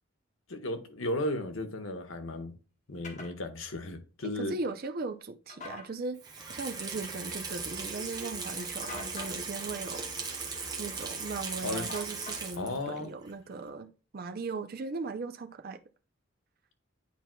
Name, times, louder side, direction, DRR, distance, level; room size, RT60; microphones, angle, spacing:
voice 1, 0.5-2.5 2.9-4.5 11.6-11.9 12.6-13.1, left 1 dB, 75° left, 1.1 m, -35 dB
sound 1, 3.0-3.3 5.5-5.9 8.8-9.4 11.9-12.7, left 4 dB, 35° left, 1.2 m, -43 dB
voice 2, 4.2-10.5 10.8-15.8, right 3 dB, 45° right, 0.5 m, -38 dB
Water tap faucet / Sink (filling or washing), 6.2-12.9 13.3-13.4, right 4 dB, 20° right, 1.1 m, -38 dB
10.0 x 4.4 x 2.2 m
head